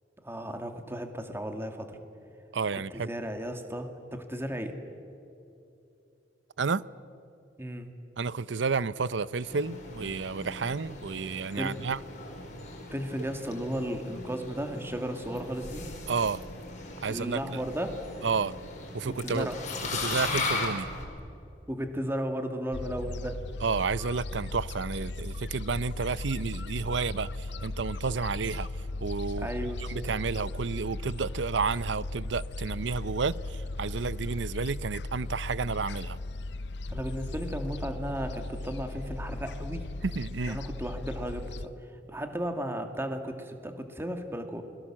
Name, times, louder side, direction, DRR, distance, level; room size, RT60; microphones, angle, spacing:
voice 1, 0.2-2.0 2.7-4.8 7.6-7.9 11.5-11.8 12.9-15.9 17.1-18.0 19.2-19.6 21.7-23.4 29.4-29.9 36.9-39.9 40.5-41.7 42.1-44.6, equal, 15° right, 2.2 m, -35 dB
voice 2, 2.5-3.1 6.6-6.8 8.2-12.0 16.1-16.4 17.0-17.6 18.2-18.6 18.9-19.5 20.0-20.9 23.6-28.7 29.0-36.2 40.1-40.6, right 5 dB, 75° right, 0.6 m, -31 dB
sound 1, 9.4-21.0, left 3 dB, 45° left, 5.3 m, -38 dB
Gull seagull, 22.7-41.7, left 2 dB, 65° left, 0.7 m, -37 dB
30.0 x 22.0 x 7.5 m
head